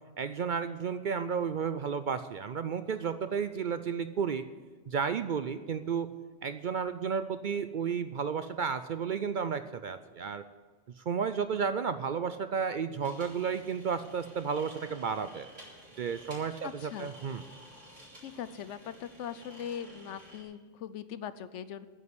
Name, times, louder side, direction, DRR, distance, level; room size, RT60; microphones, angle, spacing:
voice 1, 0.2-4.4 4.9-6.1 6.4-10.4 11.0-15.5 16.0-17.4, right 6 dB, 55° right, 11 dB, 0.6 m, -32 dB
sound 1, 13.0-20.4, right 1 dB, 85° right, 4.3 m, -52 dB
voice 2, 16.6-17.1 18.2-21.9, left 9 dB, 80° left, 14 dB, 1.0 m, -40 dB
9.4 x 8.4 x 9.8 m, 1.4 s
omnidirectional pair, 1.2 m